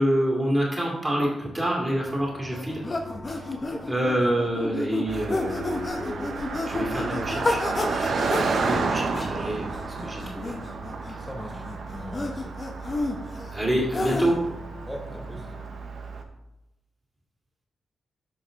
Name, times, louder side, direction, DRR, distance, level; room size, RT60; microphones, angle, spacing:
voice 1, 0.0-2.8 3.3-3.5 3.9-7.6 7.9-10.5 11.1-11.2 13.5-14.4 15.3-15.4, right 1 dB, 15° right, -2 dB, 2.2 m, -27 dB
sound 1, 1.8-15.7, left 1 dB, 60° left, 2.7 m, -46 dB
sound 2, 2.5-14.5, left 2 dB, 40° left, 1.2 m, -31 dB
Car passing by, 5.1-16.2, right 4 dB, 75° right, 1.0 m, -32 dB
voice 2, 11.2-12.6 14.9-15.5, equal, 15° left, 3 dB, 1.2 m, -40 dB
8.7 x 5.6 x 3.8 m, 0.91 s
cardioid pair, 65°, 0 cm